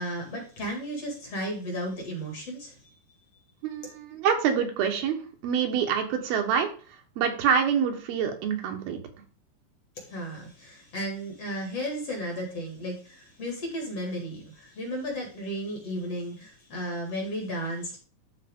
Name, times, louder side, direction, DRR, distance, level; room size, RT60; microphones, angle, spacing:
voice 1, 0.0-2.9 10.0-18.0, equal, 45° left, 1 dB, 2.6 m, -34 dB
voice 2, 3.6-6.7 7.2-9.0, right 7 dB, 75° right, 4 dB, 3.0 m, -26 dB
12.5 x 4.3 x 3.6 m, 0.39 s
omnidirectional pair, 4.4 m